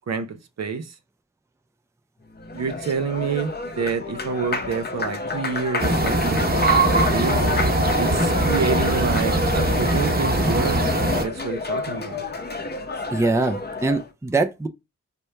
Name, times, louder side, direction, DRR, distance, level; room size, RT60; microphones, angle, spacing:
voice 1, 0.1-1.0 2.5-6.5 6.9-7.5 8.0-10.9 11.2-12.2, right 5 dB, 55° right, 0.7 m, -28 dB
Applause, 2.3-14.1, left 3 dB, 30° left, 0.8 m, -30 dB
sound 1, 5.8-11.2, right 1 dB, 30° right, 1.1 m, -21 dB
voice 2, 13.1-14.7, right 3 dB, 10° right, 0.6 m, -23 dB
4.3 x 2.2 x 3.3 m
supercardioid pair, 40°, 33 cm